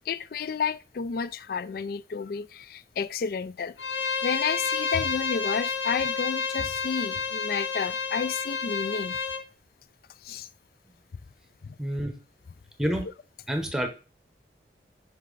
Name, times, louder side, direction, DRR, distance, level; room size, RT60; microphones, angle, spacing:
voice 1, 0.1-3.7 4.2-9.2 10.2-10.5 11.6-11.8, left 6 dB, 55° left, 0.3 m, -31 dB
Bowed string instrument, 3.8-9.4, left 5 dB, 85° left, 0.7 m, -30 dB
voice 2, 11.8-12.2 12.8-13.1 13.5-13.9, equal, 5° right, 1.0 m, -28 dB
5.5 x 5.3 x 3.9 m
head